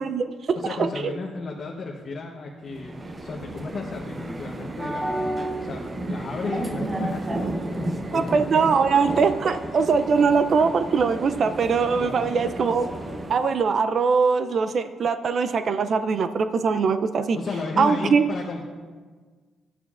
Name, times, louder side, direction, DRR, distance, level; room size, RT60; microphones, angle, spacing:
voice 1, 0.0-1.1 8.1-12.9 13.3-17.4 17.8-18.2, right 5 dB, 55° right, 10 dB, 0.4 m, -22 dB
voice 2, 0.5-2.9 3.2-5.8 6.1-8.4 12.0-12.3 17.3-18.6, left 4 dB, 45° left, -1 dB, 0.9 m, -33 dB
sound 1, 2.7-13.5, right 1 dB, 25° right, 0.8 m, -32 dB
11.5 x 9.1 x 2.4 m, 1.5 s
cardioid pair, 90°, 0 cm